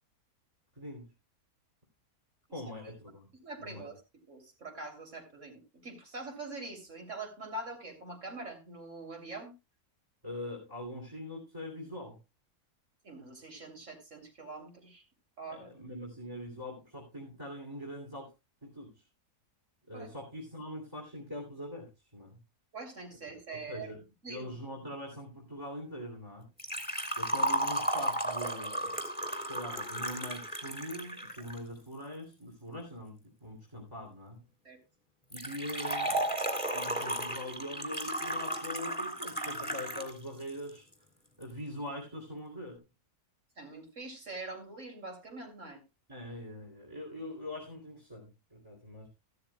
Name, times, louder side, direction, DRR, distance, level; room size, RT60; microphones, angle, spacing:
voice 1, 0.7-1.1 2.5-3.3 3.6-3.9 10.2-12.2 15.5-18.3 18.6-18.9 19.9-22.4 23.3-26.5 27.2-28.9 29.4-34.4 35.3-36.3 36.7-40.9 41.4-42.8 46.1-49.1, left 1 dB, 20° right, 0 dB, 3.1 m, -43 dB
voice 2, 3.4-4.0 4.3-9.5 13.0-15.0 15.4-15.7 19.9-20.2 22.7-23.9 24.2-24.5 34.7-34.8 43.6-45.8, right 2 dB, 55° right, 3 dB, 3.7 m, -44 dB
Liquid, 26.6-31.6 35.3-40.1 40.4-40.5 41.4-41.5, right 1 dB, 5° left, 2.7 m, -34 dB
15.0 x 13.0 x 2.3 m, 0.25 s
omnidirectional pair, 1.6 m